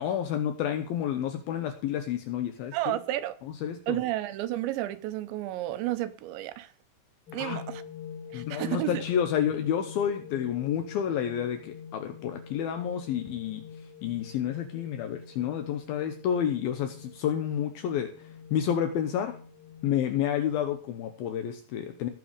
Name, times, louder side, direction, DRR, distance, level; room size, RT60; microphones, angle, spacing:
voice 1, 0.0-3.0 3.4-4.0 7.3-7.6 8.3-13.6 14.0-19.3 19.8-22.1, left 9 dB, 75° left, 7 dB, 2.3 m, -30 dB
voice 2, 2.7-3.4 3.9-6.7 7.3-7.8 8.3-9.0, right 15 dB, 85° right, 13 dB, 3.2 m, -31 dB
sound 1, 7.3-20.1, left 7 dB, 30° left, 2.3 m, -45 dB
17.0 x 6.9 x 5.1 m, 0.42 s
omnidirectional pair, 5.1 m